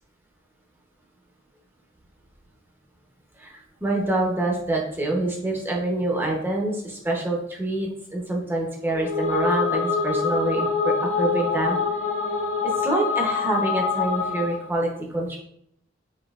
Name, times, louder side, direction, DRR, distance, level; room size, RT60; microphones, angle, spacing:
voice 1, 3.4-11.8 12.8-15.4, right 2 dB, 10° right, -2 dB, 0.7 m, -26 dB
sound 1, 8.9-14.7, left 5 dB, 65° left, 1.1 m, -25 dB
5.2 x 2.9 x 2.4 m, 0.72 s
head